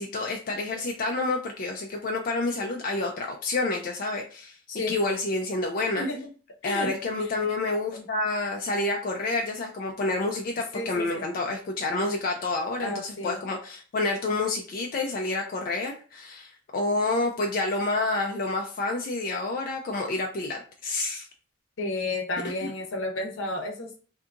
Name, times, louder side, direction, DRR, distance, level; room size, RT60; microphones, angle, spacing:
voice 1, 0.0-4.6 4.9-6.1 6.6-21.3 22.6-22.7, left 2 dB, 45° left, 2 dB, 0.4 m, -29 dB
voice 2, 10.7-11.2 12.8-13.4 21.8-24.0, left 2 dB, 75° left, 3 dB, 0.7 m, -32 dB
2.7 x 2.5 x 3.5 m, 0.39 s
head